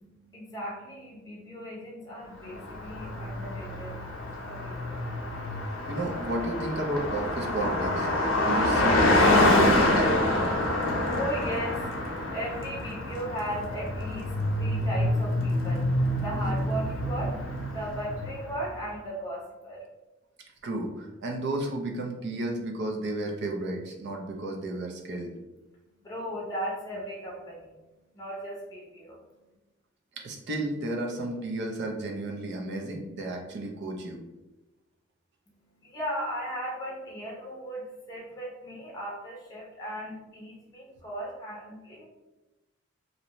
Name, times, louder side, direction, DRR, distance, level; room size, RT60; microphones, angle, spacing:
voice 1, 0.0-4.9 10.9-19.8 25.7-29.5 35.5-42.0, right 1 dB, 20° left, -3 dB, 0.6 m, -37 dB
Car passing by, 2.5-18.6, left 1 dB, 85° left, 0.6 m, -27 dB
voice 2, 5.9-9.1 9.5-10.2 20.6-25.3 30.2-34.2, right 1 dB, 60° right, 1 dB, 0.5 m, -32 dB
2.6 x 2.1 x 2.9 m, 1.0 s
head